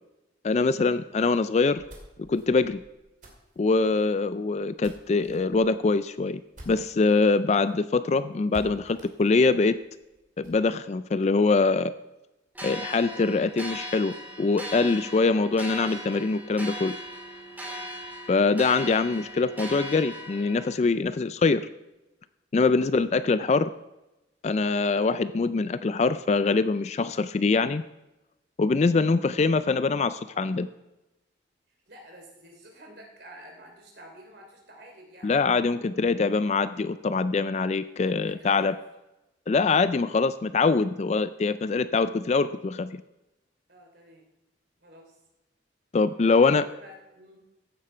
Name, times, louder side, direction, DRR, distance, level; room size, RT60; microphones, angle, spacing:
voice 1, 0.4-1.8 2.3-2.8 3.6-6.4 6.7-9.8 10.4-11.9 12.6-16.9 18.3-21.7 22.5-23.7 24.4-27.8 28.6-30.7 35.2-38.7 39.5-43.0 45.9-46.6, left 4 dB, 35° left, 14 dB, 0.3 m, -23 dB
sound 1, 1.6-7.3 7.6-7.7 8.0-8.1 8.5-10.6, right 1 dB, 45° right, 2.7 m, -50 dB
sound 2, 12.5-20.7, equal, 10° right, 2.9 m, -38 dB
voice 2, 17.6-17.9 22.8-23.1 31.9-35.4 38.0-38.8 39.6-40.1 43.7-44.3 44.8-45.2 46.2-47.4, equal, 60° right, 1 dB, 3.1 m, -50 dB
15.0 x 8.7 x 4.4 m, 1.0 s
head